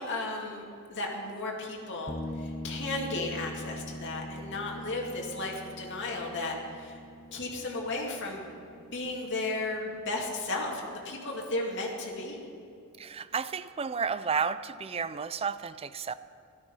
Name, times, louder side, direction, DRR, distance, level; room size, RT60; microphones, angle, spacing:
voice 1, 0.0-7.0 7.3-12.4, left 2 dB, 55° left, -2 dB, 2.3 m, -35 dB
sound 1, 2.1-11.6, left 1 dB, 15° left, 0.7 m, -43 dB
voice 2, 13.0-16.1, right 6 dB, 25° right, 14 dB, 0.4 m, -32 dB
13.5 x 12.5 x 5.5 m, 2.7 s
head